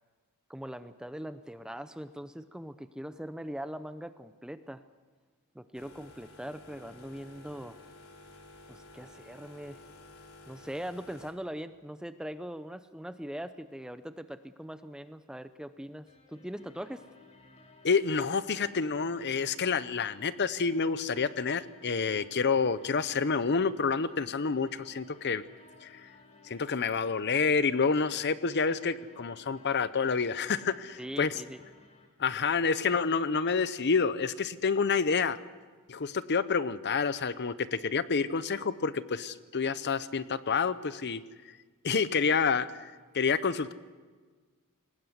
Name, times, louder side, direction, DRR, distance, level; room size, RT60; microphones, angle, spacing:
voice 1, 0.5-4.8 5.5-7.8 8.7-9.8 10.5-17.1 31.0-31.6, equal, 5° right, 11 dB, 0.6 m, -41 dB
sound 1, 5.7-11.3, left 2 dB, 75° left, 3.0 m, -53 dB
sound 2, 16.1-32.1, left 3 dB, 30° left, 3.6 m, -57 dB
voice 2, 17.8-25.4 25.8-26.1 26.5-31.4 32.2-35.4 35.9-41.2 41.8-43.7, left 5 dB, 50° left, 14 dB, 0.8 m, -28 dB
22.5 x 19.5 x 8.1 m, 1.4 s
head